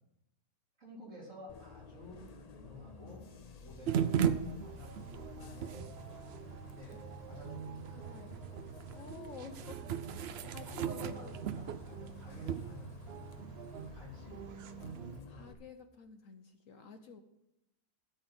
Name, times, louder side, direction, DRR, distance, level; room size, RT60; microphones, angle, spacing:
voice 1, 0.8-2.3 2.5-3.2 3.6-4.2 4.5-5.9 6.7-8.3 10.4-13.1 13.8-14.3, left 2 dB, 50° right, -5 dB, 4.1 m, -52 dB
Bus, 1.5-15.5, left 1 dB, 45° left, 0.5 m, -51 dB
sound 1, 3.9-15.2, right 8 dB, 70° right, 0.6 m, -38 dB
voice 2, 7.9-8.5 8.9-9.8 10.1-11.3 15.3-17.2, left 6 dB, 65° left, 7 dB, 1.0 m, -51 dB
13.0 x 4.4 x 7.9 m, 0.88 s
omnidirectional pair, 1.7 m